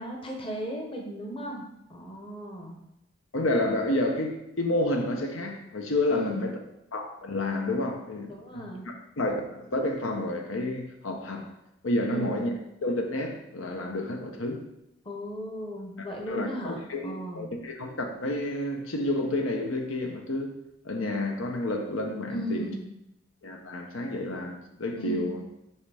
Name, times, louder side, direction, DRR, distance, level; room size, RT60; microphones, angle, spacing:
voice 1, 0.0-2.8 6.1-6.5 8.3-8.9 12.0-12.4 15.0-17.5 22.3-22.9 25.0-25.4, right 1 dB, 25° left, 0.8 m, -36 dB
voice 2, 3.3-6.5 6.9-8.7 9.2-11.5 11.8-12.5 12.8-14.6 16.0-20.5 20.8-22.7 23.4-25.4, left 1 dB, 90° left, 0.9 m, -30 dB
5.7 x 5.5 x 3.4 m
head